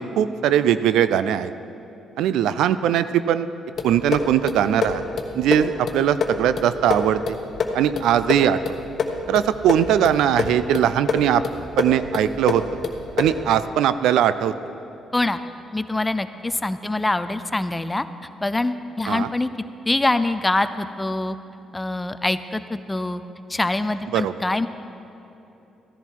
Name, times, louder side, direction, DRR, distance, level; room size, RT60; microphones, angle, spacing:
voice 1, 0.0-1.5 2.2-3.5 3.8-5.0 5.3-7.4 7.7-8.8 9.3-11.4 11.8-12.6 13.2-14.5 19.1-19.3 24.1-24.3, right 10 dB, 85° right, 13 dB, 0.4 m, -20 dB
sound 1, 3.8-13.5, left 4 dB, 55° left, 1.2 m, -27 dB
voice 2, 15.7-18.0 18.4-19.5 19.9-21.4 21.7-23.2 23.5-24.7, left 2 dB, 15° left, 11 dB, 0.5 m, -24 dB
14.5 x 11.0 x 4.6 m, 3.0 s
cardioid pair, 90°, 0 cm